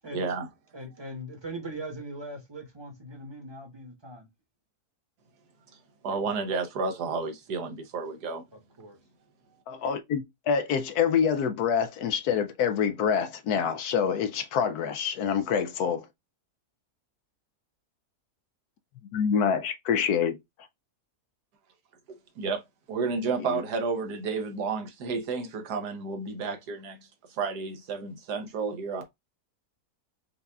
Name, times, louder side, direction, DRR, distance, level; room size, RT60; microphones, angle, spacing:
voice 1, 0.1-0.5 6.0-8.4 22.4-22.6 22.9-29.0, right 4 dB, 80° right, 1.5 m, -31 dB
voice 2, 0.7-4.3 8.8-9.0, right 1 dB, 20° right, 1.0 m, -40 dB
voice 3, 9.7-16.1 19.1-20.4 23.4-23.6, left 7 dB, 75° left, 1.1 m, -26 dB
5.4 x 2.4 x 3.4 m
omnidirectional pair, 1.7 m